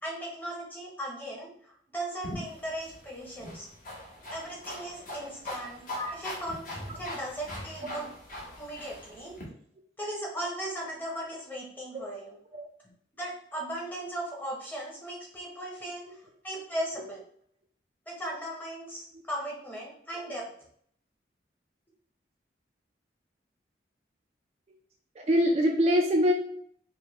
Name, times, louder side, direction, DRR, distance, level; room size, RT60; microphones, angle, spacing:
voice 1, 0.0-3.7 4.3-5.8 6.1-6.6 7.0-8.1 8.6-9.4 10.0-12.4 13.1-17.2 18.1-20.5, right 1 dB, 10° left, -2 dB, 0.9 m, -37 dB
sound 1, 2.2-9.4, left 1 dB, 50° left, 1.0 m, -41 dB
voice 2, 25.3-26.3, equal, 35° right, 1 dB, 0.4 m, -24 dB
4.8 x 2.2 x 3.0 m, 0.64 s
head